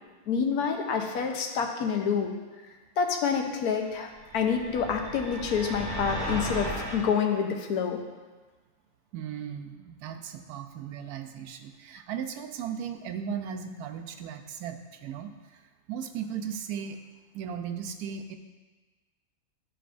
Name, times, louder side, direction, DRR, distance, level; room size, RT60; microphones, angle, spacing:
voice 1, 0.3-2.3 3.0-8.0, left 6 dB, 80° left, 3 dB, 1.3 m, -28 dB
sound 1, 4.2-7.1, equal, 60° left, 2.1 m, -35 dB
voice 2, 9.1-15.6 15.9-17.0 17.3-18.3, right 7 dB, 85° right, 6 dB, 1.1 m, -37 dB
12.5 x 4.6 x 2.5 m, 1.3 s
omnidirectional pair, 1.6 m